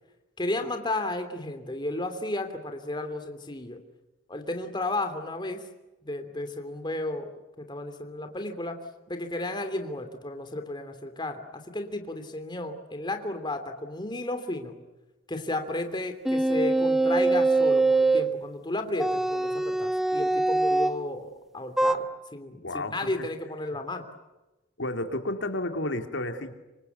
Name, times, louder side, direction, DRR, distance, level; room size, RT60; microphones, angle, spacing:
voice 1, 0.4-3.8 4.3-5.6 6.0-7.3 7.6-8.8 9.1-14.8 15.3-22.0 22.3-24.1, left 2 dB, 25° left, 7 dB, 3.0 m, -33 dB
sound 1, 16.2-18.3 19.0-21.0 21.8-21.9, right 2 dB, ahead, 1.2 m, -23 dB
voice 2, 22.6-23.1 24.8-26.5, left 1 dB, 75° left, 6 dB, 3.2 m, -31 dB
26.5 x 26.0 x 8.2 m, 1.0 s
head